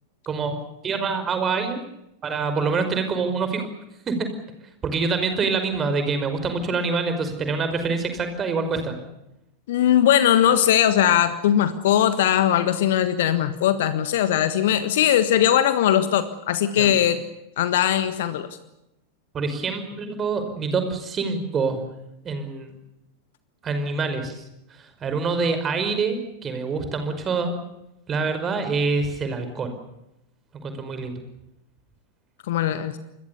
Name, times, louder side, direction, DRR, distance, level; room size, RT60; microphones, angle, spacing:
voice 1, 0.8-1.8 2.2-3.6 4.1-4.3 4.8-8.9 16.8-16.9 19.3-21.8 22.2-22.7 23.6-24.4 24.7-27.5 28.1-29.7 30.5-31.2, right 4 dB, 25° right, 8 dB, 5.3 m, -26 dB
voice 2, 9.7-17.2 17.6-18.5 32.5-33.0, left 10 dB, 55° left, 12 dB, 1.5 m, -20 dB
28.5 x 21.5 x 7.0 m, 0.87 s
figure-of-eight pair, 90°, 0 cm